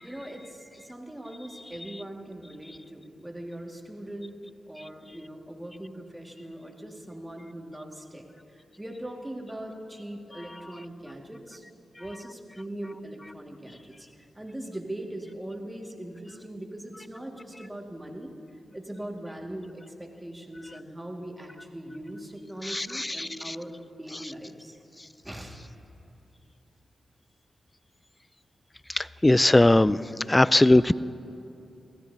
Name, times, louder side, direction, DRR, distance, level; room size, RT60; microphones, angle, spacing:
voice 1, 0.0-4.4 4.7-8.2 8.5-11.7 12.0-18.3 18.7-23.7 24.0-24.8 25.2-25.6, right 1 dB, 15° right, 1 dB, 1.9 m, -40 dB
voice 2, 22.6-23.6 28.9-30.0 30.3-30.9, left 1 dB, 20° left, 18 dB, 0.3 m, -20 dB
20.5 x 13.5 x 2.7 m, 2.8 s
supercardioid pair, 40°, 0 cm